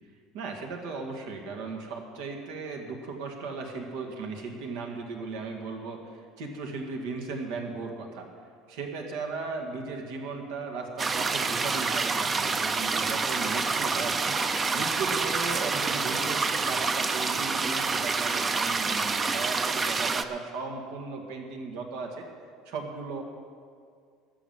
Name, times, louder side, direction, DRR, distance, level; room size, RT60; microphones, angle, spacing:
voice 1, 0.3-8.3 8.7-14.3 14.7-22.3 22.7-23.2, right 4 dB, 85° right, 3 dB, 2.0 m, -36 dB
sound 1, 11.0-20.2, right 4 dB, 25° right, 0.6 m, -27 dB
13.0 x 7.4 x 9.3 m, 2.2 s
cardioid pair, 130°, 0 cm